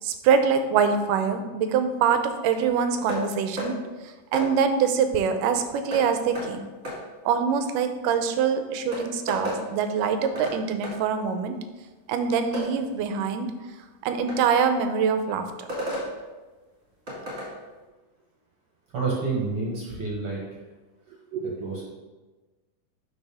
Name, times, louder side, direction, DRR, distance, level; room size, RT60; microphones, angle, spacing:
voice 1, 0.0-3.8 4.3-6.7 7.3-11.6 12.1-13.5 14.0-15.7 21.3-21.6, right 6 dB, 85° right, 8 dB, 2.2 m, -24 dB
sound 1, 3.1-3.2 3.6-3.7 4.3-4.5 5.9-6.0 6.3-6.5 6.8-7.0 8.4-8.5 8.9-9.6 10.3-10.6 10.8-11.0 12.5-12.7 14.3-14.4 15.7-16.1 17.1-17.5, equal, 25° right, 2.2 m, -32 dB
voice 2, 18.9-20.4 21.4-21.8, right 3 dB, 50° right, -3 dB, 1.9 m, -29 dB
11.5 x 5.3 x 3.5 m, 1.2 s
omnidirectional pair, 3.8 m